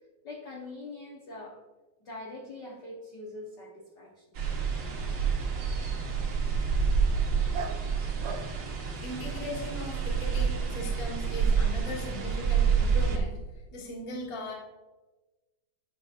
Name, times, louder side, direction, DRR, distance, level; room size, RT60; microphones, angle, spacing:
voice 1, 0.2-1.6 2.0-4.4, left 2 dB, 65° left, -2 dB, 1.0 m, -43 dB
sound 1, 4.4-13.2, right 6 dB, 60° right, 1.4 m, -28 dB
Dog, 4.4-9.8, right 4 dB, 75° right, 1.9 m, -45 dB
voice 2, 9.0-13.4 13.7-14.5, left 1 dB, 25° left, -3 dB, 0.6 m, -38 dB
9.8 x 5.9 x 2.5 m, 1.2 s
omnidirectional pair, 3.3 m